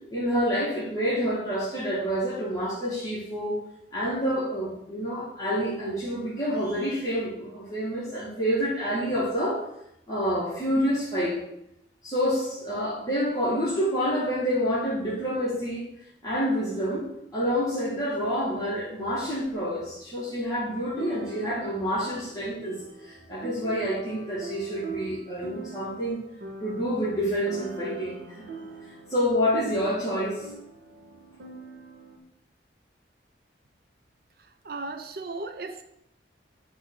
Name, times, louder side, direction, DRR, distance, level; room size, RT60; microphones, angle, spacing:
voice 1, 0.1-3.6 3.9-9.6 10.1-11.4 12.0-15.9 16.2-26.2 26.6-28.4 29.1-30.5, equal, 20° left, -8 dB, 2.2 m, -28 dB
sound 1, 19.4-19.5 21.0-32.2, right 3 dB, 75° right, 1.5 m, -42 dB
voice 2, 34.6-35.8, right 3 dB, 55° right, 8 dB, 0.6 m, -35 dB
9.9 x 3.6 x 6.3 m, 0.80 s
head